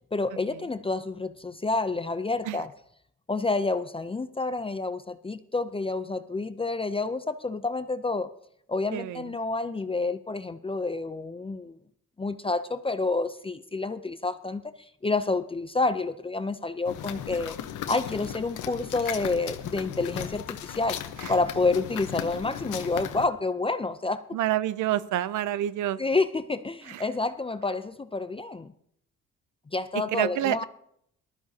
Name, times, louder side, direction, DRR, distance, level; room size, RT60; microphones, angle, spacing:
voice 1, 0.1-2.7 3.3-8.3 8.7-11.7 12.2-14.6 15.0-17.6 17.9-21.0 21.3-24.4 26.0-28.7 29.7-30.6, left 3 dB, 20° left, 11 dB, 0.5 m, -29 dB
voice 2, 8.9-9.3 21.2-21.3 24.3-26.0 26.9-27.0 30.1-30.6, right 12 dB, 75° right, 17 dB, 0.6 m, -28 dB
sound 1, 16.9-23.3, left 10 dB, 85° left, 1.0 m, -36 dB
19.0 x 13.0 x 2.8 m, 0.72 s
cardioid pair, 90°, 30 cm